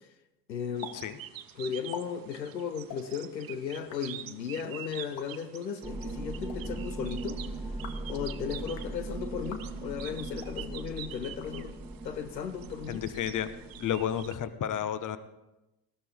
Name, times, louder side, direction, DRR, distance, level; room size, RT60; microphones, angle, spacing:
voice 1, 0.5-0.9 1.6-7.4 8.1-11.7 12.0-13.0, left 7 dB, 90° left, 1.0 m, -36 dB
sound 1, 0.8-1.0 1.2-1.3 1.7-2.0 2.8-3.0 3.7-4.0 5.0-5.3 6.3-6.6 7.6-8.1 8.6-8.9 9.4-9.6 10.3-10.6 11.3-12.0, left 8 dB, 60° left, 1.9 m, -45 dB
sound 2, 0.8-14.4, right 12 dB, 45° right, 1.0 m, -47 dB
sound 3, 5.8-14.3, right 2 dB, 5° right, 1.8 m, -39 dB
voice 2, 12.9-13.5 13.8-15.2, left 10 dB, 40° left, 1.2 m, -31 dB
19.5 x 14.0 x 3.7 m
hypercardioid pair, 60°, 49 cm